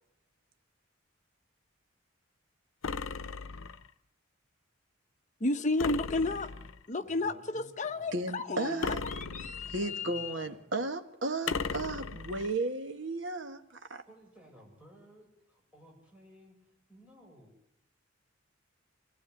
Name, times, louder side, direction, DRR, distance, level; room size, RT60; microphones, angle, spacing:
sound 1, 2.8-3.9 5.8-6.9 8.8-9.9 11.5-12.5, left 4 dB, 85° left, 0.8 m, -36 dB
voice 1, 5.4-6.5 6.9-10.3, left 2 dB, 35° left, 8 dB, 1.1 m, -33 dB
voice 2, 7.0-8.3 9.3-10.7 14.1-17.5, equal, 5° right, -1 dB, 7.2 m, -57 dB
voice 3, 8.1-9.0 9.7-14.0, right 2 dB, 65° right, 7 dB, 1.8 m, -34 dB
24.5 x 15.5 x 9.4 m, 0.81 s
head